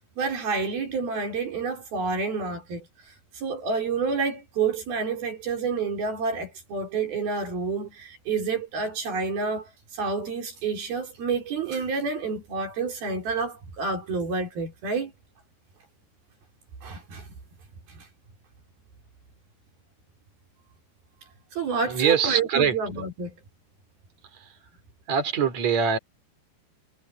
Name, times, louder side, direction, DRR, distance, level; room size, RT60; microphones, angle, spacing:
voice 1, 0.2-2.9 3.3-15.1 16.8-17.3 17.9-18.0 21.5-23.4, right 4 dB, 65° right, 6.1 m, -29 dB
voice 2, 21.8-22.8 24.3-24.6 25.1-26.0, right 7 dB, 45° right, 5.5 m, -23 dB
omnidirectional pair, 4.6 m